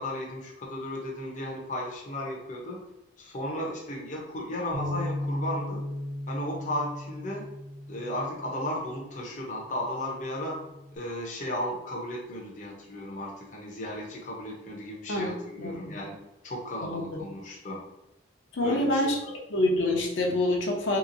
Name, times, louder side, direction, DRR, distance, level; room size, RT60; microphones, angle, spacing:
voice 1, 0.0-2.8 3.2-5.9 6.3-7.5 7.9-10.6 10.9-16.1 16.4-17.8 18.6-19.3, left 1 dB, 40° left, -2 dB, 0.6 m, -35 dB
Bass guitar, 4.7-9.1 9.8-11.0, left 1 dB, 55° right, 0.9 m, -37 dB
voice 2, 15.1-16.0 16.8-17.0 18.5-19.2 19.5-21.0, left 1 dB, 80° left, -1 dB, 0.7 m, -26 dB
3.5 x 2.9 x 2.5 m, 0.91 s
head